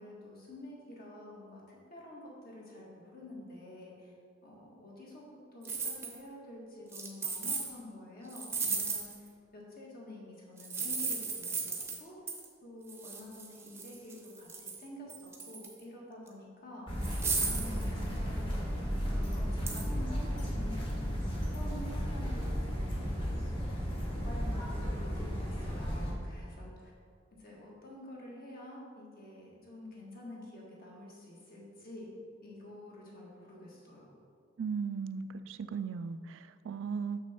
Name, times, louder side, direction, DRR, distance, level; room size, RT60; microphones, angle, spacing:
voice 1, 0.0-4.1 4.4-12.1 12.6-17.1 17.5-18.7 19.1-21.0 21.5-23.6 24.1-24.8 25.1-26.9 27.4-34.2, left 1 dB, 45° left, -4 dB, 1.7 m, -48 dB
sound 1, 5.6-6.2 6.9-7.7 8.3-9.3 10.6-12.0 12.3-12.5 12.9-14.8 15.1-15.8 16.3-16.4 17.0-17.9 19.7-19.9, right 4 dB, 10° right, 0.7 m, -36 dB
sound 2, 16.9-26.1, equal, 25° left, 1.4 m, -34 dB
voice 2, 34.6-37.2, right 6 dB, 65° right, 13 dB, 0.3 m, -37 dB
6.5 x 6.0 x 4.4 m, 2.2 s
head